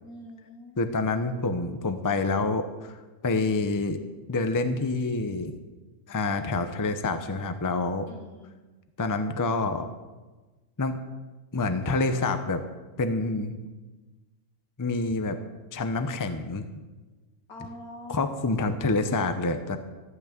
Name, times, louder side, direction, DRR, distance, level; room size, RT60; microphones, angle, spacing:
voice 1, 0.0-0.9 8.1-8.5 17.5-18.7, left 1 dB, 85° left, 0 dB, 2.8 m, -45 dB
voice 2, 0.8-3.0 3.2-4.0 4.3-5.5 6.1-8.1 9.0-9.9 10.8-11.0 11.5-12.6 13.0-13.6 14.8-15.4 15.7-16.7 18.1-19.8, left 3 dB, 20° left, 8 dB, 0.6 m, -27 dB
14.5 x 6.1 x 8.9 m, 1.2 s
omnidirectional pair, 1.5 m